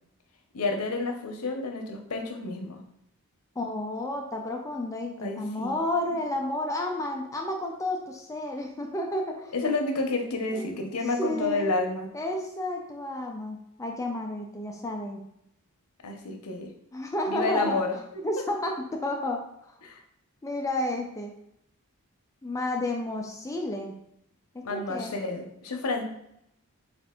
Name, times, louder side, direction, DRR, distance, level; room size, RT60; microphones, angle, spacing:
voice 1, 0.5-2.8 5.2-5.7 9.5-12.1 16.0-16.7 17.3-18.2 19.8-20.0 24.6-26.0, left 3 dB, 85° left, 4 dB, 0.7 m, -30 dB
voice 2, 3.6-9.5 10.5-10.7 11.2-11.7 12.1-15.2 16.9-17.8 18.2-19.7 20.4-21.3 22.4-23.9 24.5-25.2, left 1 dB, 15° left, 1 dB, 0.4 m, -31 dB
4.4 x 2.5 x 3.6 m, 0.77 s
head